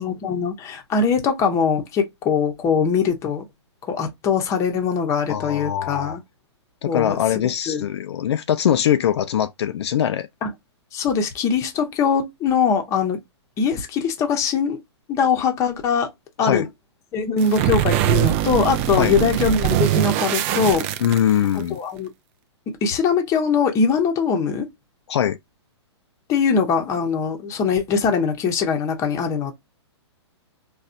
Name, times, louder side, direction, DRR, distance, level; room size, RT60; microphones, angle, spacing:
voice 1, 0.0-3.4 3.9-6.2 6.9-7.2 7.4-7.9 10.4-10.5 10.9-13.2 13.6-14.8 15.1-16.1 16.4-16.7 17.1-20.9 21.7-22.1 22.8-24.7 26.3-29.5, left 6 dB, 20° left, 0.8 m, -22 dB
voice 2, 5.3-6.2 6.8-10.3 16.4-16.7 19.0-19.1 21.0-21.8 25.1-25.4, left 10 dB, 65° left, 0.5 m, -22 dB
sound 1, 17.4-21.6, right 13 dB, 30° right, 0.3 m, -22 dB
4.1 x 2.3 x 2.4 m
hypercardioid pair, 150°, 15 cm